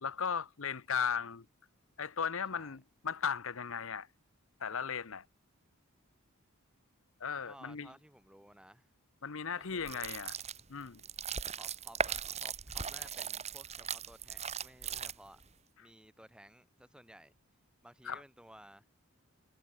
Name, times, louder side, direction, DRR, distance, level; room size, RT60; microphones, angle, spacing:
voice 1, 0.0-1.4 2.0-4.1 4.6-5.2 7.2-7.9 9.2-10.3 10.7-11.0 18.0-18.2, left 6 dB, 65° left, 0.9 m, -36 dB
voice 2, 7.4-8.9 9.6-10.2 11.5-15.4 15.8-17.3 17.8-18.9, right 1 dB, 5° right, 4.3 m, -56 dB
sound 1, 9.8-15.5, right 7 dB, 30° right, 1.9 m, -39 dB
head